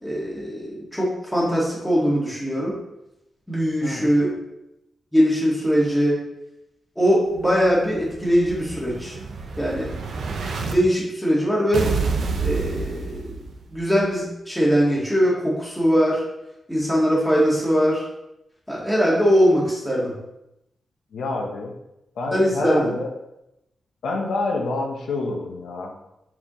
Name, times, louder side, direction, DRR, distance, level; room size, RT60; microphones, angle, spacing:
voice 1, 0.0-2.7 3.5-4.3 5.1-6.2 7.0-9.2 9.6-9.9 10.2-11.9 12.4-13.4 13.7-16.2 16.7-18.0 18.7-20.1 22.3-23.0, equal, 5° left, -6 dB, 1.9 m, -21 dB
Explosion, 7.4-10.7 11.7-13.8, right 4 dB, 80° right, 0.7 m, -29 dB
voice 2, 21.1-21.7 22.2-23.1 24.0-25.9, left 2 dB, 90° left, 1 dB, 1.0 m, -27 dB
7.3 x 4.8 x 3.1 m, 0.88 s
wide cardioid pair, 155°, 0 cm